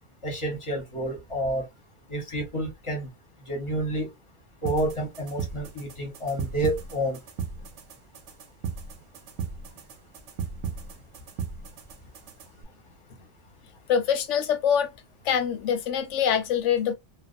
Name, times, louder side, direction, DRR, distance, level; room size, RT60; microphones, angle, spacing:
voice 1, 0.2-1.6 2.1-3.1 3.5-4.1 4.6-7.2, right 1 dB, 30° left, 1.0 m, -29 dB
sound 1, 4.6-12.6, right 6 dB, 80° right, 0.9 m, -37 dB
voice 2, 13.9-14.9 15.2-16.9, left 8 dB, 85° left, 0.9 m, -24 dB
2.4 x 2.2 x 2.5 m
omnidirectional pair, 1.2 m